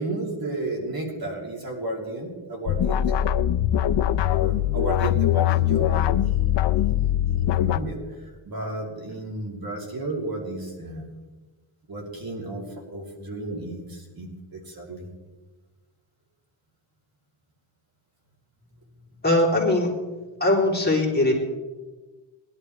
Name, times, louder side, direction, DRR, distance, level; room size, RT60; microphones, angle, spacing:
voice 1, 0.0-3.1 4.2-8.0 8.2-11.0 11.9-15.1, right 2 dB, 45° right, -1 dB, 3.1 m, -33 dB
sound 1, 2.7-7.8, left 12 dB, 60° left, 0.5 m, -22 dB
voice 2, 19.2-19.9 20.4-21.3, left 2 dB, 20° left, -3 dB, 3.2 m, -20 dB
21.0 x 11.0 x 3.2 m, 1.2 s
wide cardioid pair, 120°, 50 cm